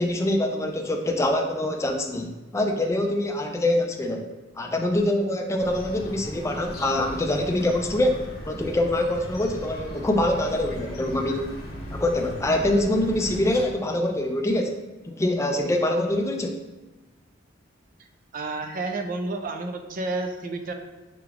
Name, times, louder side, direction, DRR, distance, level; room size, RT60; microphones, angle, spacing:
voice 1, 0.0-4.3 4.6-11.5 11.9-14.8 15.1-16.6, left 1 dB, 15° left, 3 dB, 0.4 m, -24 dB
sound 1, 5.6-13.7, equal, 50° left, 0.7 m, -38 dB
voice 2, 18.3-20.7, right 2 dB, 45° right, 6 dB, 0.4 m, -30 dB
5.8 x 3.2 x 2.4 m, 1.1 s
head